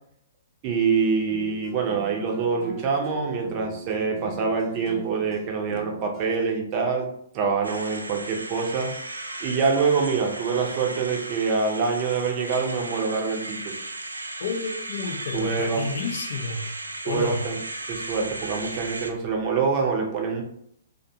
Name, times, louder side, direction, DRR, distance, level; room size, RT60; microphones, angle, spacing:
voice 1, 0.6-7.1 7.3-8.9 9.4-13.8 15.3-15.8 17.1-17.6 17.9-20.4, right 5 dB, 35° right, 1 dB, 0.6 m, -25 dB
sound 1, 1.3-6.2, right 3 dB, 25° left, 0.9 m, -41 dB
sound 2, 7.6-19.1, right 2 dB, 85° right, 0.3 m, -36 dB
voice 2, 14.4-16.7 17.0-17.5, left 4 dB, 55° left, 3 dB, 0.5 m, -30 dB
2.5 x 2.2 x 2.7 m, 0.68 s
figure-of-eight pair, 120°, 0 cm